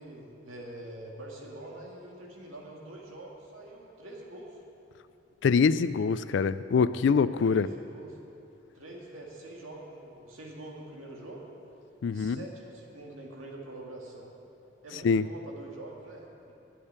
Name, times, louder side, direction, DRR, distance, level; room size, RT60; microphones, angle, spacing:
voice 1, 0.0-4.6 7.4-8.2 8.7-11.4 12.1-14.3 14.8-16.5, right 1 dB, 90° right, -1 dB, 2.1 m, -45 dB
voice 2, 5.4-7.7 12.0-12.4 15.0-15.2, left 5 dB, 65° left, 15 dB, 0.3 m, -24 dB
8.7 x 8.6 x 9.5 m, 2.9 s
head